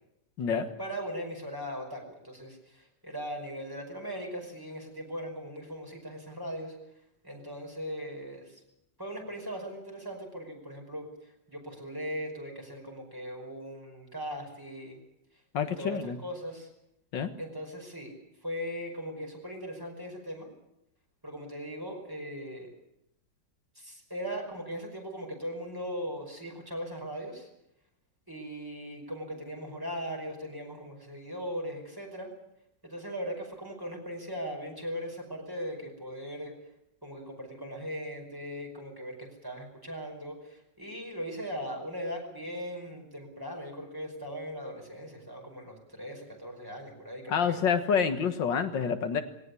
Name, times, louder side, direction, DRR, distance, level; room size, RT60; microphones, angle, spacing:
voice 1, 0.8-6.8 7.2-8.6 9.0-15.0 15.6-16.7 17.4-18.1 18.4-20.5 21.2-22.7 23.8-27.5 28.3-32.3 32.8-36.5 37.0-47.8, equal, 10° right, 1 dB, 5.3 m, -39 dB
voice 2, 15.5-16.2 17.1-17.3 47.3-49.2, left 6 dB, 85° left, 8 dB, 2.2 m, -27 dB
20.0 x 17.5 x 9.8 m, 0.80 s
omnidirectional pair, 1.9 m